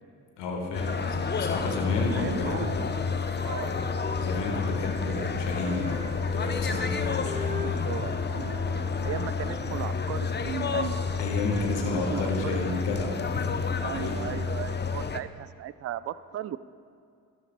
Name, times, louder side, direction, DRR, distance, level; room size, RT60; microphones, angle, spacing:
voice 1, 0.4-2.7 4.2-7.9 11.2-14.2, left 3 dB, 75° left, 0 dB, 1.5 m, -32 dB
sound 1, 0.7-15.2, left 5 dB, 25° left, 0.6 m, -30 dB
Wind instrument woodwind instrument, 1.6-5.3 5.6-10.0, left 2 dB, 20° right, 2.5 m, -41 dB
voice 2, 2.1-2.8 3.4-3.7 7.6-11.0 11.9-12.9 13.8-16.6, right 11 dB, 35° right, 16 dB, 0.4 m, -37 dB
13.5 x 12.5 x 2.2 m, 2.4 s
hypercardioid pair, 45°, 43 cm